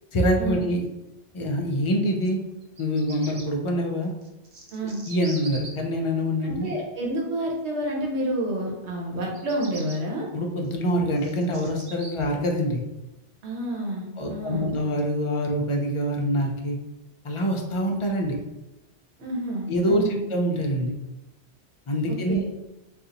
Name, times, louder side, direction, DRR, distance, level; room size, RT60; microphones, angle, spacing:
voice 1, 0.1-0.9 1.3-2.4 2.8-4.1 5.1-6.7 10.3-12.8 14.2-16.8 17.2-18.4 19.7-20.9 21.9-22.4, equal, 55° left, 1 dB, 0.3 m, -25 dB
Bird vocalization bird call bird song, 2.6-3.4 4.2-5.7 9.2-10.0 10.6-12.1, right 3 dB, 45° right, 0.5 m, -42 dB
voice 2, 4.7-5.0 6.4-10.3 13.4-14.7 19.2-20.2 22.1-22.5, right 1 dB, 80° right, -2 dB, 1.2 m, -29 dB
2.8 x 2.4 x 3.8 m, 0.99 s
omnidirectional pair, 1.1 m